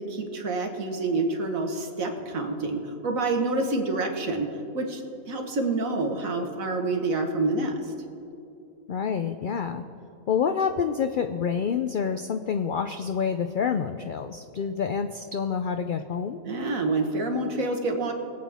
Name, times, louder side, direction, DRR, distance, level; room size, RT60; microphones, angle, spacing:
voice 1, 0.0-5.0 5.3-7.8 16.5-18.1, right 2 dB, 75° right, 3 dB, 1.8 m, -27 dB
voice 2, 8.9-9.8 10.3-16.4, left 6 dB, 75° left, 7 dB, 0.4 m, -27 dB
23.0 x 8.3 x 3.5 m, 2.8 s
omnidirectional pair, 1.4 m